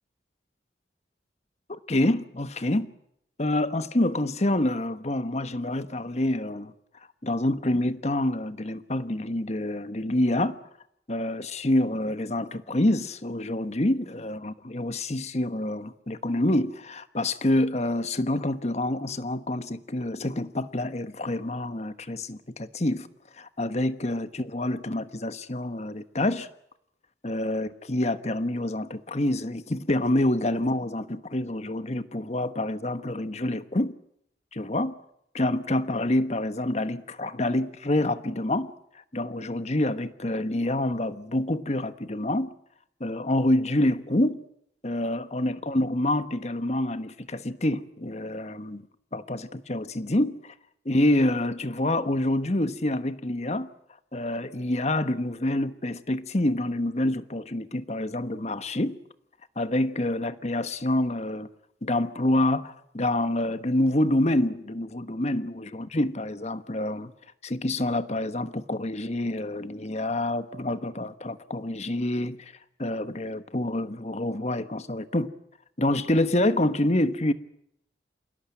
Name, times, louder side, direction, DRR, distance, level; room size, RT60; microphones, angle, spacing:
voice 1, 1.7-2.9 3.4-6.7 7.2-10.6 11.1-23.1 23.4-26.5 27.2-33.9 34.5-34.9 35.3-38.7 39.1-42.5 43.0-44.4 44.8-48.9 49.1-50.5 50.8-53.7 54.1-59.0 59.6-61.5 61.8-67.1 67.4-72.5 72.8-75.3 75.8-77.3, left 1 dB, 40° left, 1.2 m, -27 dB
28.0 x 17.5 x 9.0 m
head